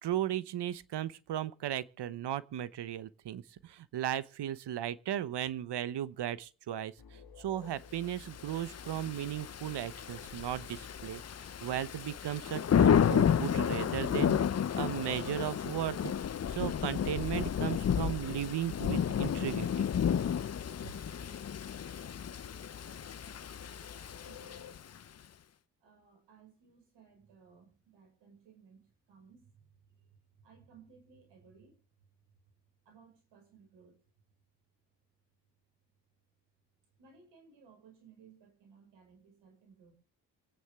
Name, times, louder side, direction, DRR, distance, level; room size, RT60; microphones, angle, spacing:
voice 1, 0.0-6.9 7.4-11.2 11.6-14.4 14.7-16.1 16.5-19.9, right 11 dB, 70° right, 1.0 m, -36 dB
sound 1, 7.0-24.7, left 5 dB, 55° left, 1.5 m, -53 dB
Thunder / Rain, 8.4-25.0, left 8 dB, 40° left, 0.6 m, -32 dB
voice 2, 24.3-24.7 25.8-31.8 32.3-32.4 32.8-34.0 37.0-39.9, right 6 dB, 90° right, 5.6 m, -60 dB
25.5 x 9.4 x 3.6 m
supercardioid pair, 45°, 42 cm